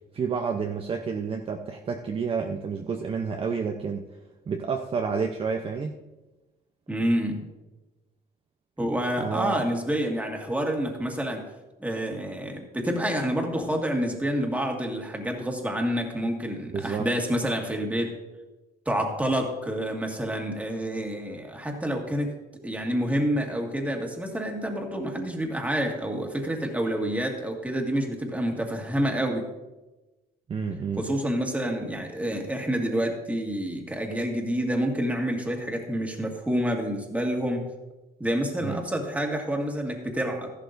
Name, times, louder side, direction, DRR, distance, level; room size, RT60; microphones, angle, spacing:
voice 1, 0.1-4.0 4.5-5.9 9.2-9.6 16.7-17.1 30.5-31.0 38.6-38.8, right 5 dB, 35° right, 3 dB, 0.7 m, -29 dB
voice 2, 6.9-7.5 8.8-11.5 11.8-18.2 18.9-22.4 22.6-29.5 31.0-37.7 38.2-40.5, equal, 10° right, 2 dB, 1.9 m, -28 dB
13.5 x 11.5 x 2.6 m, 1.1 s
cardioid pair, 110°, 17 cm